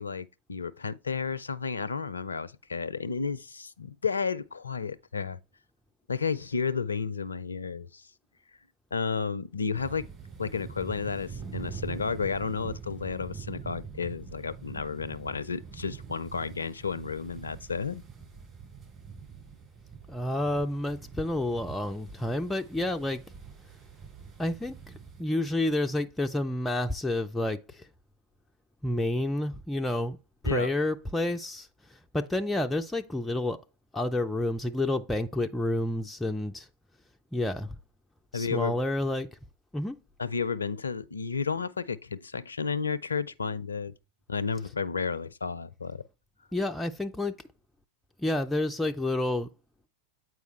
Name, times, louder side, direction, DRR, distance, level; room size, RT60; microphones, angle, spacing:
voice 1, 0.0-5.4 6.1-8.1 8.9-10.1 10.4-18.0 30.4-30.7 38.3-38.8 40.2-43.9 44.3-46.0, left 5 dB, 75° left, 0.4 m, -32 dB
sound 1, 9.7-25.2, right 6 dB, 25° right, 3.8 m, -44 dB
voice 2, 20.1-23.2 24.4-24.8 25.2-27.8 28.8-30.2 30.4-31.7 32.1-33.6 33.9-36.7 37.3-37.7 38.3-39.3 39.7-40.0 46.5-47.3 48.2-49.5, left 1 dB, 5° left, 0.4 m, -29 dB
8.1 x 4.7 x 3.2 m
figure-of-eight pair, 90°, 0 cm